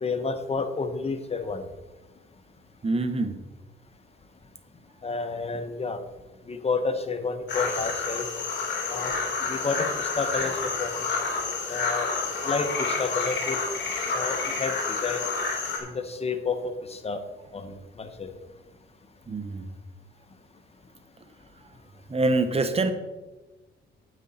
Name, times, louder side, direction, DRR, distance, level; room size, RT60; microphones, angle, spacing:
voice 1, 0.0-1.6 5.0-6.0 6.5-8.2 8.9-9.9 10.2-11.1 11.7-12.1 12.4-13.6 14.1-15.3 15.8-16.6 16.9-17.2 17.5-18.3, left 4 dB, 30° left, 8 dB, 1.2 m, -30 dB
voice 2, 2.8-3.3 19.3-19.7 22.1-22.9, right 2 dB, 30° right, 9 dB, 1.2 m, -25 dB
sound 1, 7.5-15.8, left 4 dB, 65° left, 2.7 m, -29 dB
9.3 x 8.2 x 4.3 m, 1.1 s
cardioid pair, 90°, 20 cm